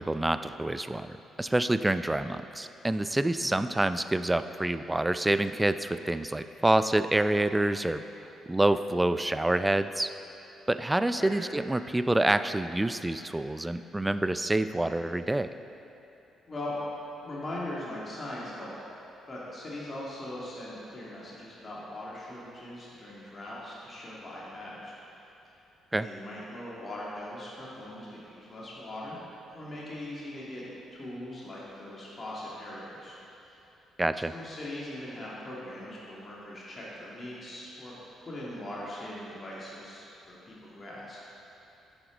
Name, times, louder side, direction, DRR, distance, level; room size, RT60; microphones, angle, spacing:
voice 1, 0.0-8.0 8.5-10.1 10.7-15.5 25.9-26.1 34.0-34.3, right 1 dB, 15° right, 12 dB, 0.4 m, -27 dB
voice 2, 17.2-18.7 19.3-24.9 25.9-30.6 30.9-33.2 33.4-33.6 34.3-37.9 38.2-41.3, left 1 dB, 35° left, -6 dB, 2.3 m, -40 dB
11.0 x 8.0 x 3.9 m, 2.9 s
hypercardioid pair, 45°, 0 cm